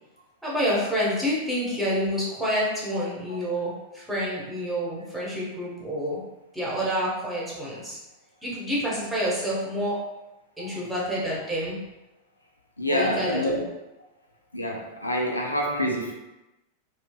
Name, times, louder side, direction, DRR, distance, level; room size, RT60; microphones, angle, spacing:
voice 1, 0.4-6.2 6.5-8.0 8.4-10.0 10.6-11.8 12.9-13.6, equal, 5° right, -7 dB, 1.1 m, -28 dB
voice 2, 10.6-10.9 12.8-13.7 14.5-16.1, equal, 85° left, 0 dB, 0.4 m, -27 dB
3.1 x 2.8 x 2.2 m, 0.98 s
figure-of-eight pair, 90°, 0 cm